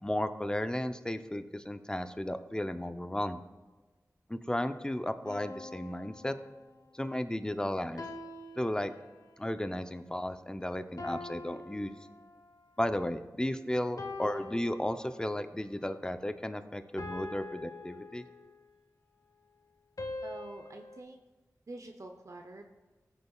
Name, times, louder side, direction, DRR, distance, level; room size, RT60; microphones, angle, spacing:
voice 1, 0.0-3.4 4.3-6.3 6.9-8.0 8.6-8.9 9.4-12.0 12.8-18.2, left 1 dB, 10° left, 9 dB, 0.6 m, -34 dB
sound 1, 5.2-6.9 8.0-9.5 11.0-12.6 14.0-15.5 17.0-18.7 20.0-21.0, left 2 dB, 75° left, 0.9 m, -44 dB
voice 2, 20.2-21.2 21.7-22.6, right 2 dB, 55° right, 4 dB, 0.7 m, -46 dB
15.0 x 6.7 x 2.4 m, 1.2 s
cardioid pair, 40°, 6 cm